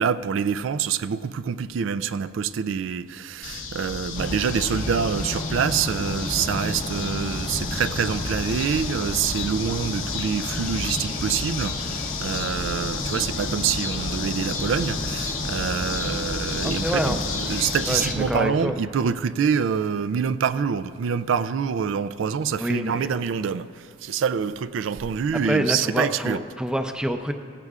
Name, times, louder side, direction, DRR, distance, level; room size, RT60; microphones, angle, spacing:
voice 1, 0.0-26.4, right 7 dB, 85° right, 0.4 m, -26 dB
sound 1, 3.4-18.1, left 5 dB, 90° left, 1.0 m, -32 dB
sound 2, 4.1-18.3, left 1 dB, 40° left, 0.7 m, -32 dB
voice 2, 16.6-17.2 17.9-18.7 22.6-23.1 25.5-27.3, equal, 5° right, 0.5 m, -26 dB
16.0 x 15.5 x 2.4 m
head